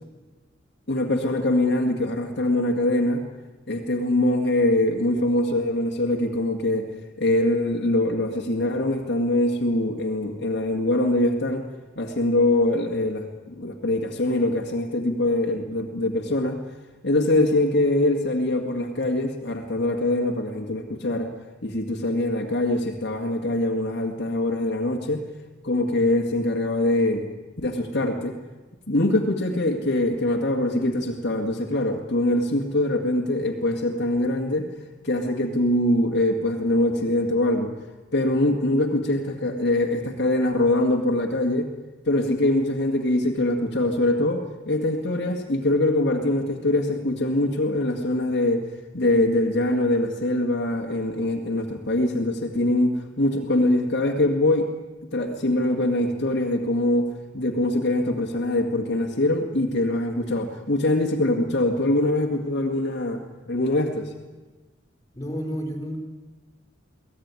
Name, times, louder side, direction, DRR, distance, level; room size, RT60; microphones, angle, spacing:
voice 1, 0.9-3.2 3.7-6.9 7.2-11.7 12.0-16.6 17.0-21.3 21.6-25.2 25.6-27.3 27.6-28.4 28.9-34.7 35.0-37.7 38.1-41.7 42.1-48.7 48.9-54.7 55.1-63.2 63.5-64.1, left 1 dB, 60° left, 2 dB, 2.0 m, -23 dB
voice 2, 65.1-66.0, equal, 15° left, 0 dB, 4.1 m, -30 dB
23.5 x 17.0 x 9.7 m, 1.3 s
head